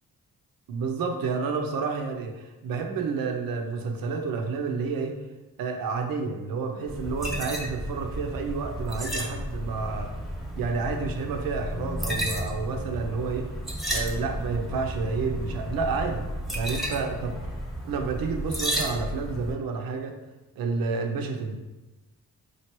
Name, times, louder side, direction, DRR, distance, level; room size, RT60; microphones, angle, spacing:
voice 1, 0.7-5.2 5.6-10.1 10.6-13.5 13.9-16.2 16.5-17.5 17.9-20.1 20.6-21.6, right 4 dB, 80° right, 4 dB, 0.6 m, -30 dB
sound 1, 6.9-19.6, equal, ahead, 1.0 m, -33 dB
4.5 x 2.4 x 2.9 m, 1.1 s
supercardioid pair, 55°, 35 cm